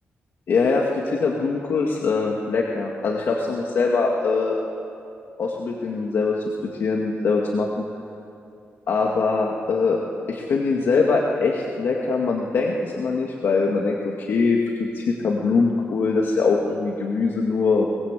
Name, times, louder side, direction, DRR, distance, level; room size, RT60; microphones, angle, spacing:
voice 1, 0.5-4.6 5.4-7.7 8.9-10.0 10.3-17.9, left 4 dB, 60° left, -1 dB, 2.1 m, -22 dB
23.5 x 20.0 x 8.4 m, 2.6 s
wide cardioid pair, 165°, 4 cm